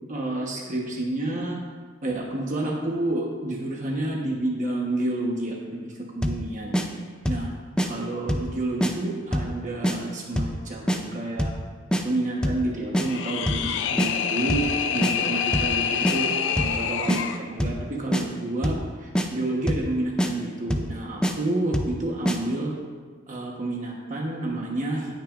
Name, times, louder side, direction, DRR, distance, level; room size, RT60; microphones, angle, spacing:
voice 1, 0.1-1.6 2.0-6.7 7.3-7.5 7.8-11.5 12.0-16.3 16.6-22.7 23.3-25.1, right 1 dB, 40° right, -2 dB, 1.1 m, -29 dB
sound 1, 6.2-6.4 6.7-6.9 7.3-7.5 7.8-7.9 8.3-8.5 8.8-8.9 9.3-9.5 9.8-10.0 10.4-10.6 10.9-11.0 11.4-11.6 11.9-12.0 12.4-12.6 12.9-13.1 13.5-13.7 14.0-14.1 14.5-14.7 15.0-15.1 15.5-15.8 16.0-16.2 16.6-16.8 17.1-17.2 17.6-17.8 18.1-18.2 18.6-18.9 19.1-19.3 19.7-19.9 20.2-20.3 20.7-20.9 21.2-21.3 21.7-22.0 22.3-22.4, equal, 5° left, 0.5 m, -24 dB
sound 2, 13.0-17.4, left 7 dB, 65° left, 0.5 m, -27 dB
17.0 x 6.0 x 2.5 m, 1.5 s
head